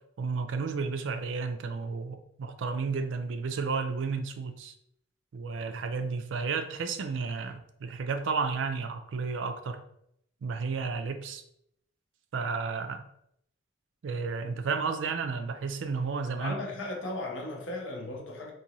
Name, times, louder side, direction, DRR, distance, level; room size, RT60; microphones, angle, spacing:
voice 1, 0.2-4.7 5.3-9.8 10.4-11.4 12.3-13.0 14.0-16.6, right 4 dB, 75° right, 0.4 m, -32 dB
voice 2, 16.4-18.5, left 2 dB, 80° left, 0.9 m, -36 dB
3.9 x 2.6 x 2.9 m
head